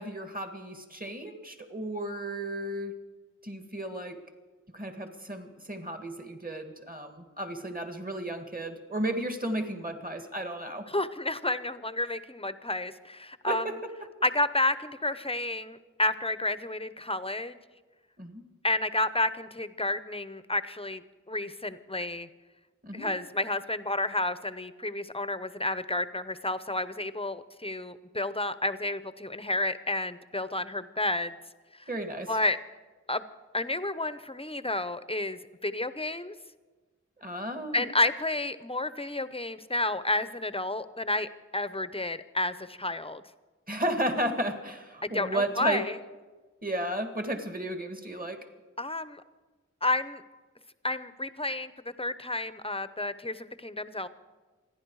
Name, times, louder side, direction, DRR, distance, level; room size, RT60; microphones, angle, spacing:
voice 1, 0.0-3.0 3.4-4.2 4.7-10.9 13.5-13.8 18.2-18.4 22.8-23.1 31.9-32.3 37.2-37.8 43.7-45.9 46.6-48.5, right 1 dB, 30° right, 6 dB, 1.9 m, -33 dB
voice 2, 10.9-13.7 14.2-17.6 18.6-22.3 22.9-31.3 31.7-31.8 32.3-32.6 33.1-33.2 33.5-36.3 37.7-43.2 45.0-46.0 48.8-49.2 49.8-50.2 50.8-54.1, left 2 dB, 20° left, 13 dB, 0.8 m, -31 dB
27.5 x 10.5 x 4.8 m, 1.3 s
wide cardioid pair, 40°, 29 cm